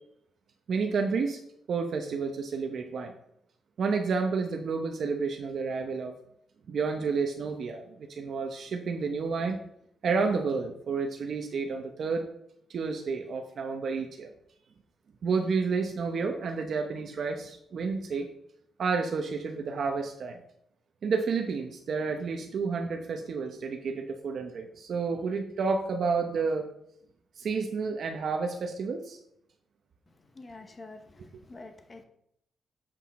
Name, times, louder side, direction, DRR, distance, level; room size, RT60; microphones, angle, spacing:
voice 1, 0.7-1.4 1.7-3.1 3.8-6.1 6.7-9.6 10.0-12.3 12.7-14.3 15.2-18.3 18.8-20.4 21.0-26.7 27.4-29.2, right 4 dB, 50° right, 4 dB, 0.8 m, -30 dB
voice 2, 30.3-32.1, left 2 dB, 20° left, 6 dB, 0.8 m, -47 dB
8.0 x 7.6 x 4.2 m, 0.73 s
wide cardioid pair, 170°, 0 cm